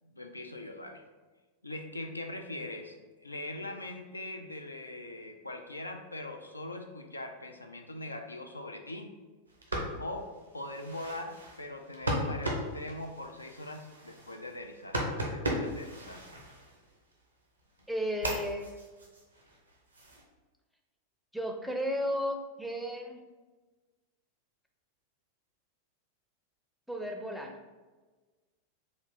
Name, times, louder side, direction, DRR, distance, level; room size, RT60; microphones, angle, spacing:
voice 1, 0.0-1.0 1.6-2.9 3.2-9.1 10.0-16.2, left 1 dB, 80° left, 4 dB, 0.3 m, -41 dB
sound 1, 9.5-17.1 17.6-20.2, right 1 dB, 80° right, 0.8 m, -37 dB
voice 2, 17.9-18.7 21.3-23.2 26.9-27.6, equal, ahead, 2 dB, 0.5 m, -34 dB
3.8 x 2.5 x 3.4 m, 1.3 s
figure-of-eight pair, 90°, 0 cm